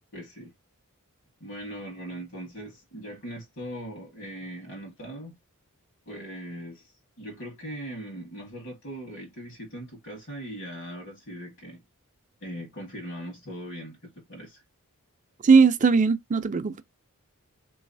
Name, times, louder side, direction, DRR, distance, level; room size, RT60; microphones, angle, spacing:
voice 1, 0.1-0.5 1.4-5.4 6.0-6.9 7.2-11.8 12.4-14.6, equal, 60° left, 1.6 m, -40 dB
voice 2, 15.4-16.8, right 5 dB, 35° right, 0.4 m, -19 dB
3.8 x 3.1 x 2.6 m
head